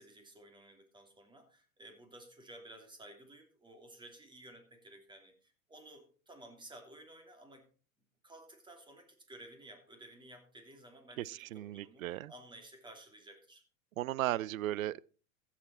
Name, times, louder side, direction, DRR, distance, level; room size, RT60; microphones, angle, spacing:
voice 1, 0.0-7.7 8.2-13.6, right 1 dB, 10° right, 3.0 m, -55 dB
voice 2, 11.2-12.3 14.0-15.0, right 14 dB, 80° right, 0.6 m, -36 dB
15.0 x 7.5 x 4.2 m
hypercardioid pair, 120°, 41 cm